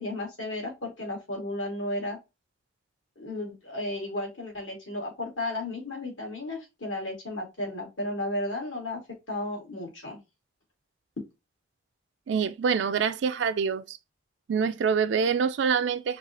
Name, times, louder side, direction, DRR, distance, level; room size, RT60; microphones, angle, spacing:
voice 1, 0.0-2.2 3.2-9.0 9.3-10.2, left 1 dB, 80° left, 2.5 m, -34 dB
voice 2, 12.3-14.0 14.5-16.2, right 6 dB, 65° right, 0.4 m, -26 dB
4.8 x 2.4 x 3.7 m
head